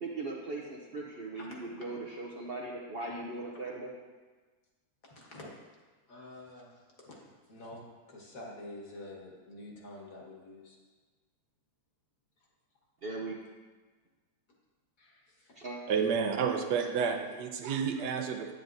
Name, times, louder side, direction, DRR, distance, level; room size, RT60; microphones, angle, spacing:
voice 1, 0.0-3.9 13.0-13.4 15.6-15.8, right 2 dB, 50° right, -1 dB, 0.7 m, -39 dB
voice 2, 1.3-1.9 5.0-5.5 6.1-7.2 7.5-10.8 15.0-15.6 16.1-16.2 17.2-17.3, left 1 dB, 60° left, -2 dB, 1.8 m, -48 dB
voice 3, 15.9-18.6, right 6 dB, 90° right, 5 dB, 1.4 m, -30 dB
9.3 x 9.0 x 2.6 m, 1.4 s
omnidirectional pair, 1.7 m